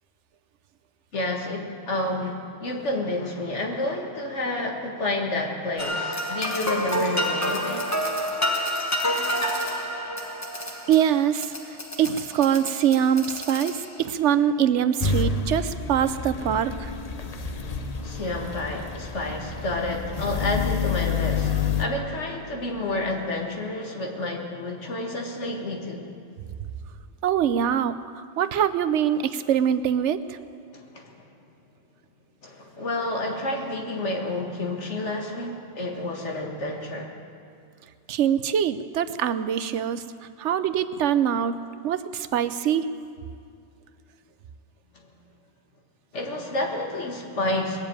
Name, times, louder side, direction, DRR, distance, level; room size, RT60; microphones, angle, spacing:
voice 1, 1.1-7.9 18.0-26.1 30.7-31.3 32.4-37.1 44.9-45.1 46.1-47.9, left 2 dB, 85° left, 1 dB, 2.1 m, -30 dB
sound 1, 5.8-14.1, equal, 15° left, 1.2 m, -29 dB
voice 2, 10.9-16.9 27.2-30.4 38.1-40.0 40.4-41.6 41.8-42.9, right 9 dB, 90° right, 13 dB, 1.0 m, -23 dB
sound 2, 15.0-21.8, left 5 dB, 40° left, 0.8 m, -28 dB
20.5 x 7.5 x 8.9 m, 2.4 s
omnidirectional pair, 1.2 m